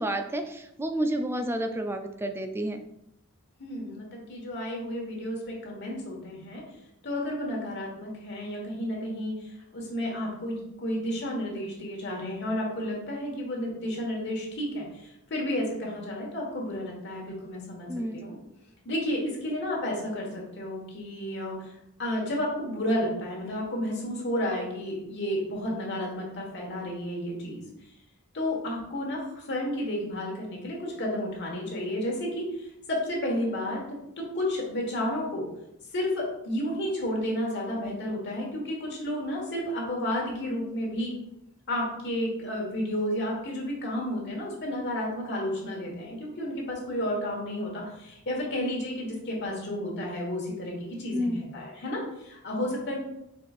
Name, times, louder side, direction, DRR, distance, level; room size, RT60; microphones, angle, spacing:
voice 1, 0.0-2.8 17.9-18.2 51.1-51.4, right 1 dB, 10° right, 6 dB, 0.3 m, -30 dB
voice 2, 3.6-6.6 7.0-17.9 18.1-18.3 18.8-21.7 22.0-27.7 28.3-35.5 35.9-41.1 41.7-53.0, left 1 dB, 55° left, -1 dB, 1.4 m, -32 dB
4.8 x 4.2 x 2.4 m, 0.83 s
head